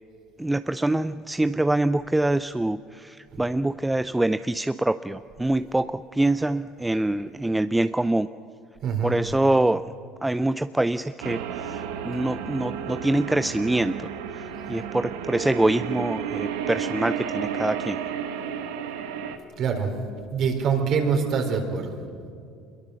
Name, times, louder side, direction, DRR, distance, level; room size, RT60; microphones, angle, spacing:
voice 1, 0.4-8.3 9.0-9.9 10.2-18.0, right 1 dB, 10° right, 12 dB, 0.5 m, -25 dB
voice 2, 8.8-9.1 19.6-19.9 20.3-22.0, right 6 dB, 55° right, 3 dB, 4.1 m, -24 dB
sound 1, 11.2-19.4, right 8 dB, 80° right, 1.5 m, -32 dB
24.5 x 22.0 x 6.5 m, 2.4 s
supercardioid pair, 80°, 0 cm